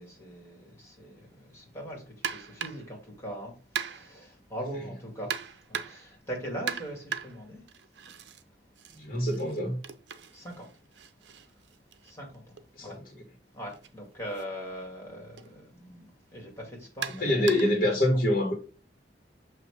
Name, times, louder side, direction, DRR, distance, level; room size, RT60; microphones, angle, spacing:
voice 1, 0.0-7.6 10.3-10.7 11.3-11.5 12.0-12.4 12.8-13.0 13.5-17.5 18.0-18.1, equal, 15° left, 2.2 m, -41 dB
sound 1, 2.2-2.9 3.8-4.2 5.3-6.1 6.7-8.4 8.8-12.6 13.7-13.9 14.3-14.4 15.4-15.5 17.0-17.8, right 7 dB, 80° right, 0.6 m, -38 dB
voice 2, 8.9-9.8 12.7-13.0 17.2-18.5, left 1 dB, 55° left, 1.7 m, -25 dB
6.5 x 3.0 x 4.9 m
head